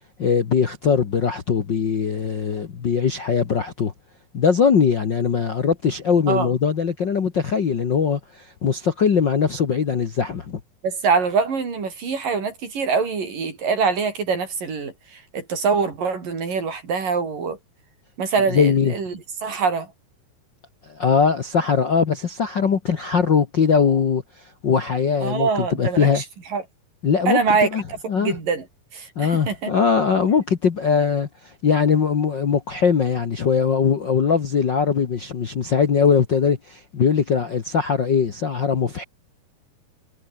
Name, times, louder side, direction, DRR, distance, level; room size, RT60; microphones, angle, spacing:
voice 1, 0.2-3.9 4.3-10.6 18.5-18.9 20.8-26.2 27.0-27.8 28.1-28.4 29.1-39.0, left 6 dB, 45° left, 1.5 m, -21 dB
voice 2, 10.8-17.6 18.2-19.9 25.2-26.2 26.5-26.6 27.3-28.6 28.9-29.7, right 5 dB, 65° right, 6.7 m, -24 dB
omnidirectional pair, 4.1 m